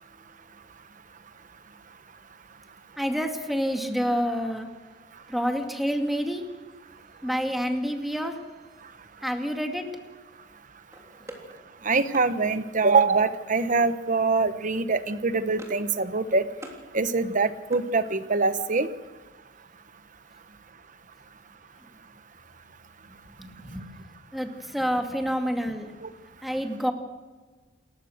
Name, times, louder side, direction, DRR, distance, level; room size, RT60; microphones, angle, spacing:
voice 1, 3.0-4.7 5.3-6.4 7.2-8.4 9.2-9.9 23.4-23.9 24.3-25.9 26.4-26.9, equal, ahead, 4 dB, 2.2 m, -28 dB
sound 1, 10.9-12.3 13.6-14.0 14.3-14.5 14.9-15.9 16.2-16.8 17.2-18.5, right 1 dB, 15° right, 3.4 m, -47 dB
voice 2, 11.8-16.4 16.9-18.9 26.0-26.1, right 4 dB, 45° right, 12 dB, 1.1 m, -24 dB
28.5 x 14.5 x 6.5 m, 1.3 s
head